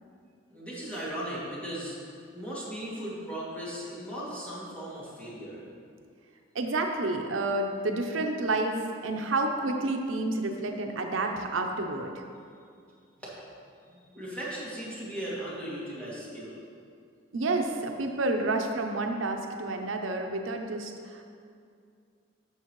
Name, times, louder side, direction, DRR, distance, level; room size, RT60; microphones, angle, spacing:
voice 1, 0.5-2.0 2.3-5.6 13.2-13.3 13.8-16.6, right 1 dB, 5° left, -9 dB, 2.3 m, -37 dB
voice 2, 6.5-12.2 17.3-21.2, right 2 dB, 85° right, 3 dB, 0.7 m, -30 dB
12.0 x 6.6 x 3.1 m, 2.3 s
head